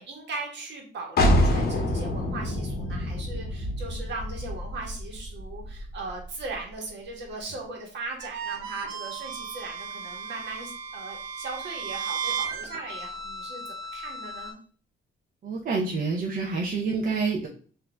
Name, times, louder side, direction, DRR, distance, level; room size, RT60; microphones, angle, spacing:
voice 1, 0.0-13.6 13.9-14.6, right 3 dB, 65° right, 0 dB, 1.2 m, -38 dB
sound 1, 1.2-6.7, left 1 dB, 50° left, 0.8 m, -27 dB
sound 2, 8.2-14.5, right 5 dB, 85° right, 0.7 m, -35 dB
voice 2, 15.4-17.5, right 4 dB, 45° right, -2 dB, 0.6 m, -27 dB
4.0 x 2.6 x 2.2 m, 0.43 s
cardioid pair, 90°, 20 cm